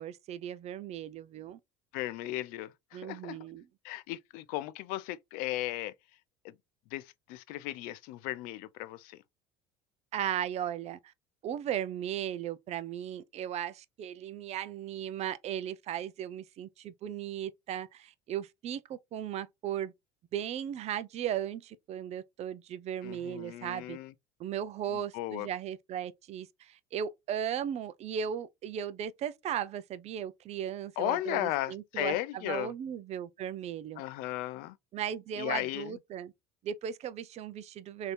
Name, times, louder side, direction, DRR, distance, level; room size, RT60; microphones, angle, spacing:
voice 1, 0.0-1.6 2.9-3.7 10.1-11.0 11.4-19.9 20.3-24.0 24.4-34.0 34.9-36.3 36.6-38.1, right 9 dB, 45° right, 0.5 m, -36 dB
voice 2, 1.9-3.4 3.8-5.9 6.4-6.5 6.9-9.2 23.0-24.1 25.1-25.5 31.0-32.7 34.0-34.8 35.4-36.0, left 15 dB, 70° left, 0.5 m, -35 dB
3.3 x 2.8 x 4.2 m
supercardioid pair, 100°, 15 cm